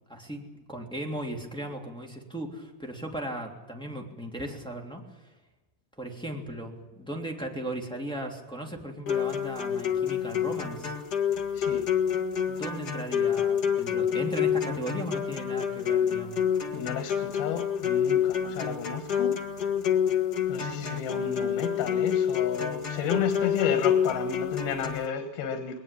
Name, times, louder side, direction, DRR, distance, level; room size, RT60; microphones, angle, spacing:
voice 1, 0.1-5.0 6.0-10.9 12.5-16.5, right 1 dB, ahead, 1 dB, 2.4 m, -37 dB
sound 1, 9.1-25.1, left 8 dB, 40° left, 1.5 m, -28 dB
voice 2, 16.7-19.4 20.5-25.8, left 7 dB, 90° left, 6 dB, 3.3 m, -32 dB
21.0 x 19.5 x 8.5 m, 1.1 s
omnidirectional pair, 4.2 m